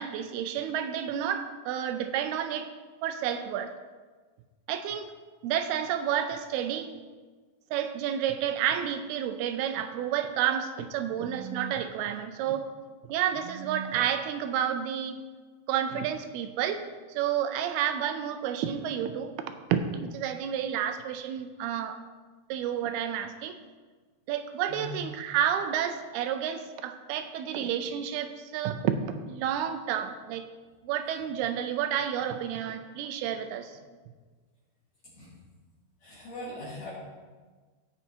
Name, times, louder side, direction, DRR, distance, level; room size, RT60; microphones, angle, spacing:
voice 1, 0.0-2.7 3.0-3.7 4.7-5.1 5.4-6.9 7.7-12.7 13.1-15.2 15.7-16.8 17.1-19.3 19.7-22.0 22.5-23.6 24.3-30.5 30.8-33.8, right 9 dB, 80° right, 8 dB, 2.4 m, -30 dB
voice 2, 24.7-25.0 35.0-35.3 36.0-36.9, left 1 dB, 55° left, -11 dB, 4.2 m, -40 dB
16.0 x 5.5 x 4.5 m, 1.4 s
omnidirectional pair, 4.9 m